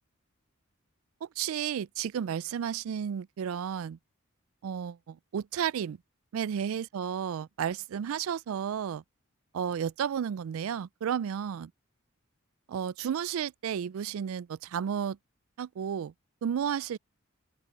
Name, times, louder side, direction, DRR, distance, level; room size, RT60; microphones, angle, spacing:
voice 1, 1.2-4.0 4.6-6.0 6.3-9.0 9.5-11.7 12.7-15.2 15.6-16.1 16.4-17.0, right 8 dB, 75° right, 0.3 m, -32 dB
open air
head